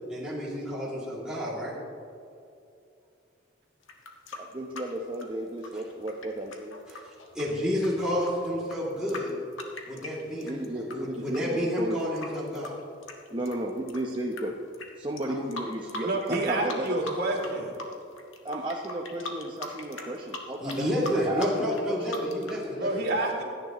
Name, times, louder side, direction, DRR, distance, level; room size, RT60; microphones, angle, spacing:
voice 1, 0.1-1.7 5.7-5.8 6.9-7.0 7.3-9.3 9.7-10.6 10.9-12.7 15.3-15.4 19.9-20.1 20.6-23.0, equal, 5° right, -9 dB, 2.7 m, -30 dB
sound 1, 3.8-11.0 11.3-14.4 14.7-14.9 15.2-16.4 16.7-17.5 17.7-22.6, left 2 dB, 85° left, 1.6 m, -40 dB
voice 2, 4.3-6.8 10.4-12.0 13.3-14.5 15.0-17.0 18.4-22.0, right 1 dB, 25° right, 0 dB, 0.9 m, -34 dB
voice 3, 16.0-17.7 22.8-23.4, right 2 dB, 55° right, -1 dB, 2.6 m, -28 dB
27.0 x 10.5 x 3.1 m, 2.6 s
head